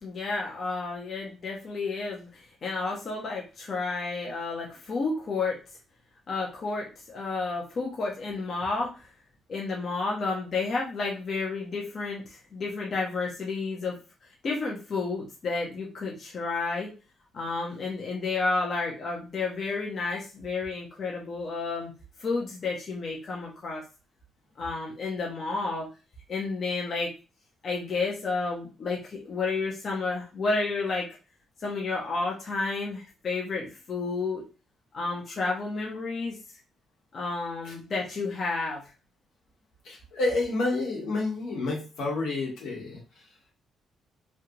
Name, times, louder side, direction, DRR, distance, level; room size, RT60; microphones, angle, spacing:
voice 1, 0.0-5.6 6.3-9.1 9.5-13.9 14.4-16.9 17.3-21.9 22.2-23.8 24.6-25.9 26.3-27.1 27.6-31.1 31.6-34.4 34.9-36.3 37.1-38.8, left 3 dB, 50° left, -2 dB, 0.9 m, -31 dB
voice 2, 39.8-43.0, left 2 dB, 85° left, -2 dB, 1.3 m, -29 dB
3.3 x 2.5 x 2.9 m, 0.32 s
cardioid pair, 90°, 0 cm